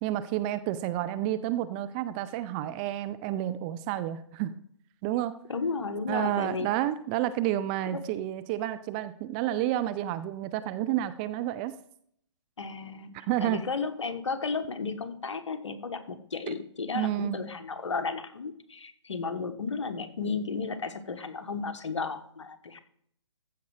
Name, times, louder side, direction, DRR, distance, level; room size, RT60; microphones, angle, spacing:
voice 1, 0.0-4.5 5.0-5.4 6.1-11.7 13.1-13.6 16.5-16.6 16.9-17.4, right 13 dB, 20° right, 13 dB, 0.3 m, -30 dB
voice 2, 5.5-6.7 7.9-8.0 12.6-13.1 13.4-22.8, left 4 dB, 75° left, 9 dB, 1.3 m, -33 dB
14.5 x 5.3 x 4.8 m, 0.65 s
hypercardioid pair, 140°, 16 cm